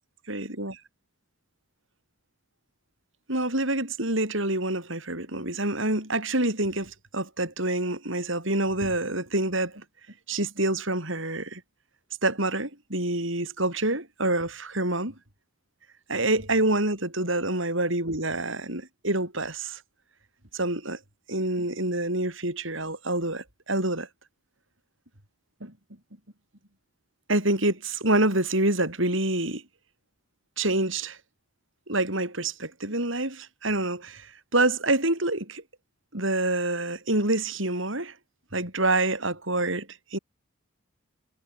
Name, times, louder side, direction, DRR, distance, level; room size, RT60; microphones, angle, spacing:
voice 1, 0.3-0.8 3.3-9.8 10.3-11.6 12.2-15.1 16.1-19.8 20.5-21.0 21.3-24.1 25.6-25.7 27.3-29.6 30.6-31.2 31.9-35.6 36.1-38.1 38.5-40.2, right 2 dB, 70° right, 8.0 m, -27 dB
head